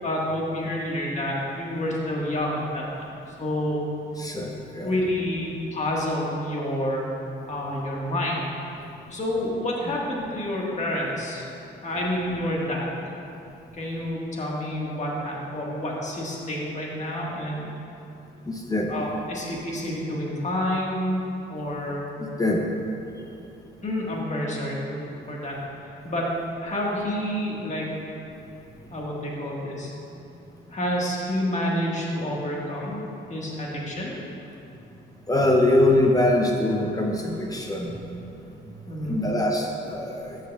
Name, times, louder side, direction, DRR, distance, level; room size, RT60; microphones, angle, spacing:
voice 1, 0.0-2.8 3.3-3.8 4.8-7.1 7.5-8.4 9.1-11.5 11.8-13.0 13.8-17.7 18.9-21.2 21.5-22.1 23.8-26.3 26.6-28.0 28.9-29.9 30.7-33.0 33.3-34.1 38.9-39.3, left 1 dB, 35° left, -3 dB, 1.6 m, -28 dB
voice 2, 4.2-4.9 18.5-18.9 22.2-22.7 35.3-38.1 39.1-40.4, left 1 dB, 20° left, 1 dB, 0.7 m, -23 dB
12.0 x 6.5 x 2.4 m, 2.8 s
cardioid pair, 90°, 20 cm